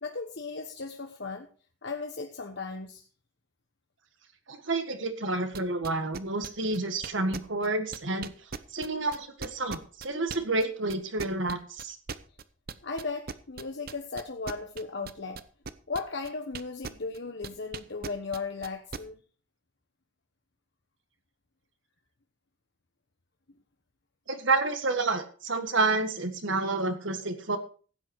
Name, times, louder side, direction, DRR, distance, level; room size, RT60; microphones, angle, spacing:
voice 1, 0.0-1.5 1.8-3.1 12.8-15.4 15.9-19.2, left 4 dB, 60° left, 4 dB, 1.2 m, -36 dB
voice 2, 4.5-8.3 8.7-12.0 24.3-27.6, right 3 dB, 70° right, 7 dB, 1.7 m, -29 dB
sound 1, 5.5-10.6 10.9-17.2 17.4-19.0, right 5 dB, 50° right, 0.8 m, -39 dB
15.5 x 9.1 x 4.8 m, 0.39 s
head